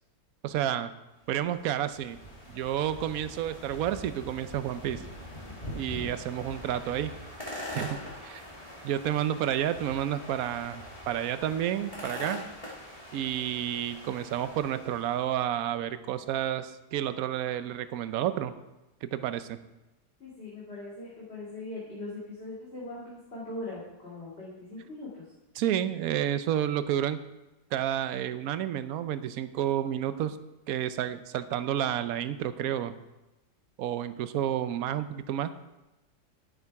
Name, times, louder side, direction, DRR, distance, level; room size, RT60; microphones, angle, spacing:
voice 1, 0.4-0.9 1.3-2.2 2.5-5.0 5.7-7.1 7.7-8.4 8.8-12.4 13.1-18.5 19.0-19.6 25.6-27.2 27.7-30.4 30.7-33.0 33.8-35.5, right 11 dB, 65° right, 12 dB, 1.0 m, -30 dB
sound 1, 1.2-15.3, left 1 dB, 20° left, 2.4 m, -43 dB
voice 2, 20.2-25.2, left 2 dB, 35° left, -8 dB, 2.8 m, -40 dB
10.5 x 9.5 x 4.7 m, 1.0 s
omnidirectional pair, 1.8 m